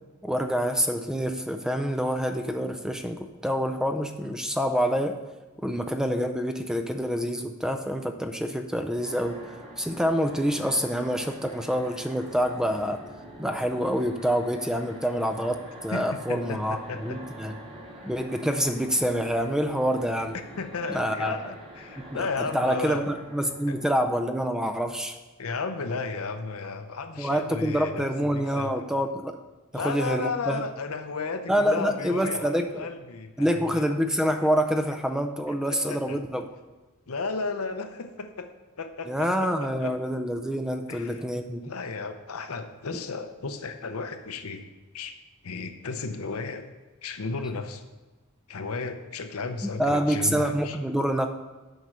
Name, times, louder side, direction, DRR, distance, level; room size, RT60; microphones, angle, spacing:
voice 1, 0.2-5.2 5.6-13.0 13.4-17.6 18.0-20.4 20.9-21.4 22.1-25.2 27.2-29.4 29.7-30.6 31.5-32.9 33.4-36.5 39.1-41.6 49.6-51.3, equal, 5° right, 7 dB, 0.4 m, -27 dB
sound 1, 9.0-24.9, right 1 dB, 25° right, 1.6 m, -45 dB
voice 2, 15.9-17.2 20.3-23.0 23.7-23.8 25.4-28.8 29.7-33.9 35.5-36.2 37.1-38.5 38.8-39.5 39.8-39.9 40.9-41.2 41.6-44.7 44.9-45.1 45.4-46.7 47.0-47.8 48.5-50.8, left 4 dB, 80° left, 7 dB, 0.8 m, -34 dB
7.8 x 5.5 x 6.2 m, 1.2 s
head